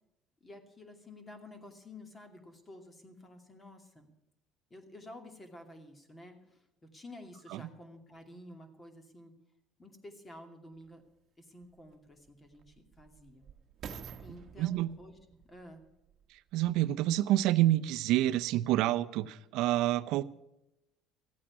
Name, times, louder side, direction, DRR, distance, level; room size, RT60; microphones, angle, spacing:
voice 1, 0.4-4.1 4.7-6.7 6.9-9.3 9.8-11.0 11.4-13.5 14.2-15.8, left 1 dB, 20° left, 2.5 m, -51 dB
sound 1, 10.8-10.9 11.6-16.9 17.6-17.7, right 7 dB, 45° right, 1.3 m, -50 dB
voice 2, 14.6-14.9 16.5-20.2, right 14 dB, 75° right, 0.6 m, -28 dB
14.5 x 8.7 x 8.3 m
cardioid pair, 125°, 0 cm